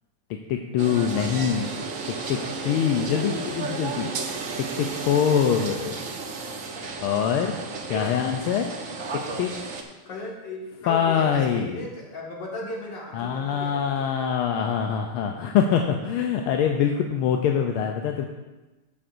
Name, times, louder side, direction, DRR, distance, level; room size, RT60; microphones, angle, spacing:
voice 1, 0.3-1.7 2.1-2.4 2.6-4.1 4.8-6.2 7.0-7.6 7.9-8.7 9.1-9.5 10.9-11.8 13.1-18.3, left 8 dB, 80° left, 3 dB, 1.5 m, -24 dB
sound 1, 0.8-9.8, right 4 dB, 55° right, 0.9 m, -33 dB
voice 2, 2.2-2.8 8.0-8.3 10.1-14.4, left 1 dB, 55° left, -3 dB, 2.5 m, -37 dB
13.5 x 8.0 x 2.6 m, 1.1 s
omnidirectional pair, 2.4 m